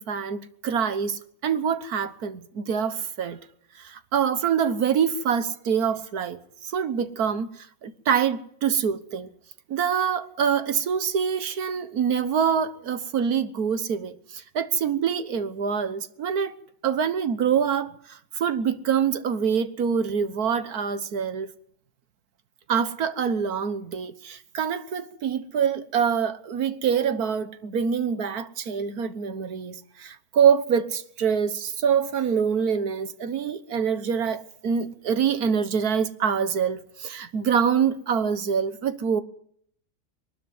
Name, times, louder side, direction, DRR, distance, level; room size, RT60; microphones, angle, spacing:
voice 1, 0.0-3.4 3.8-9.3 9.7-16.6 16.8-21.5 22.7-39.2, right 7 dB, 85° right, 1.7 m, -25 dB
23.0 x 12.5 x 9.5 m
omnidirectional pair, 1.6 m